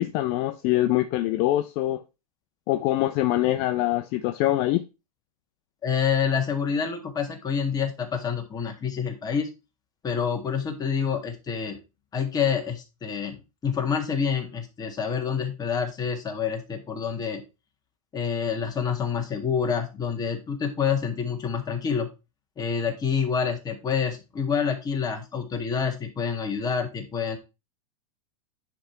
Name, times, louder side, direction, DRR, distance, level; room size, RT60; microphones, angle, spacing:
voice 1, 0.0-2.0 2.7-4.8, left 15 dB, 45° left, 0.6 m, -24 dB
voice 2, 5.8-9.5 10.0-11.8 12.1-17.4 18.1-22.1 22.6-27.4, left 6 dB, 20° left, 1.8 m, -27 dB
10.5 x 3.5 x 4.4 m
supercardioid pair, 130°, 19 cm